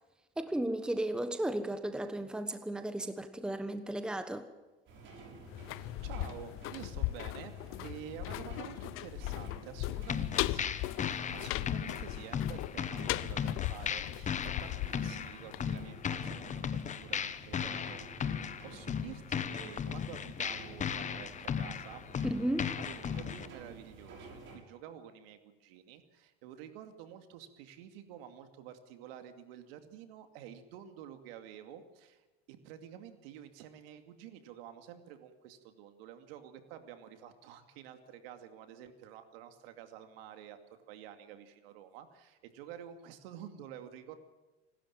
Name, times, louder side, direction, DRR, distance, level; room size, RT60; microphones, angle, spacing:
voice 1, 0.4-4.4 22.3-22.7, right 1 dB, 5° right, 9 dB, 1.2 m, -34 dB
sound 1, 4.9-24.6, right 2 dB, 35° right, 6.5 m, -52 dB
sound 2, 5.5-16.3 16.6-16.7, left 18 dB, 45° left, 0.7 m, -38 dB
voice 2, 5.6-22.0 22.8-44.1, right 10 dB, 65° right, 8 dB, 2.6 m, -50 dB
sound 3, 10.1-23.5, left 7 dB, 25° left, 1.1 m, -37 dB
26.5 x 12.5 x 9.0 m, 1.1 s
supercardioid pair, 115°, 32 cm